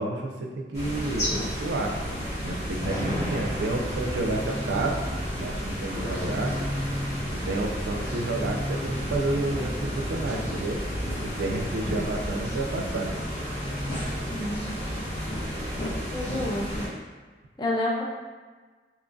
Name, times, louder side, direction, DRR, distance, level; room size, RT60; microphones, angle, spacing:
voice 1, 0.0-1.9 2.4-5.0 5.4-6.5 7.3-10.8 11.2-13.1, right 2 dB, 85° right, 1 dB, 0.4 m, -30 dB
sound 1, 0.7-16.9, equal, 40° left, 1.4 m, -32 dB
sound 2, 3.1-12.6 13.3-14.4, left 1 dB, 25° right, 0.8 m, -38 dB
voice 2, 14.2-15.1 16.1-16.9 17.6-18.0, left 1 dB, 25° left, -2 dB, 0.3 m, -30 dB
2.8 x 2.3 x 2.5 m, 1.4 s
head